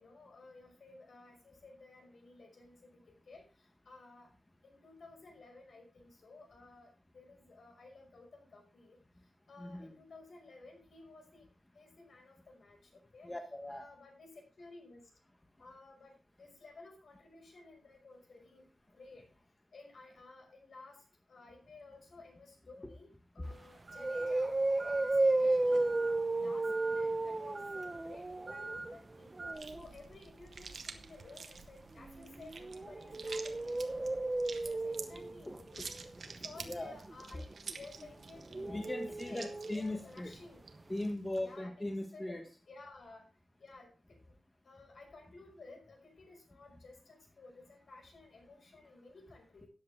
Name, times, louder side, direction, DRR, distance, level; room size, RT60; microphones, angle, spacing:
voice 1, 0.0-4.3 4.6-11.5 11.7-13.3 13.7-15.0 15.6-19.3 19.7-26.0 26.3-29.4 29.6-34.2 34.6-35.9 36.1-38.9 39.3-40.6 41.4-42.2 42.7-43.3 43.6-44.4 44.6-49.7, left 3 dB, 65° left, 2 dB, 5.6 m, -55 dB
voice 2, 9.6-10.0 13.2-13.8 23.4-23.5 26.4-26.5 35.5-35.6 36.6-36.9 38.6-40.3 40.9-42.4, left 1 dB, 15° left, 4 dB, 1.4 m, -39 dB
sound 1, 23.5-23.6 24.0-29.8 32.0-40.0 40.3-40.4 40.7-40.8, right 2 dB, 25° right, 1.1 m, -34 dB
sound 2, 23.5-29.5, right 2 dB, 40° right, 1.5 m, -47 dB
sound 3, 29.5-41.5, right 4 dB, 60° right, 1.4 m, -50 dB
13.5 x 9.6 x 3.6 m, 0.33 s
wide cardioid pair, 140°, 0 cm